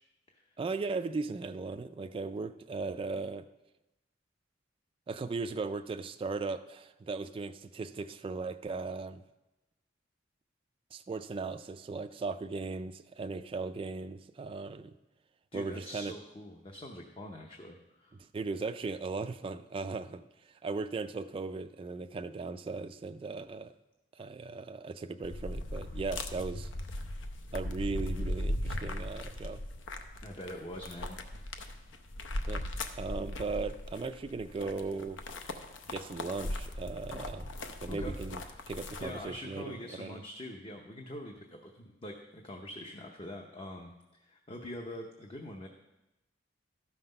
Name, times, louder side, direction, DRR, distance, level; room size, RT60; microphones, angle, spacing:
voice 1, 0.6-3.4 5.1-9.2 10.9-14.9 15.5-16.1 18.2-23.7 24.2-26.7 27.5-29.6 32.5-32.6 33.0-35.2 35.9-37.5 37.8-40.2, right 4 dB, 30° right, 9 dB, 0.3 m, -37 dB
voice 2, 15.5-18.2 30.2-31.3 37.1-37.2 37.9-38.1 38.5-38.6 39.0-45.7, left 1 dB, 30° left, 2 dB, 0.7 m, -44 dB
sound 1, 25.2-39.3, left 1 dB, 75° left, 0.7 m, -38 dB
12.5 x 5.8 x 5.4 m, 1.0 s
head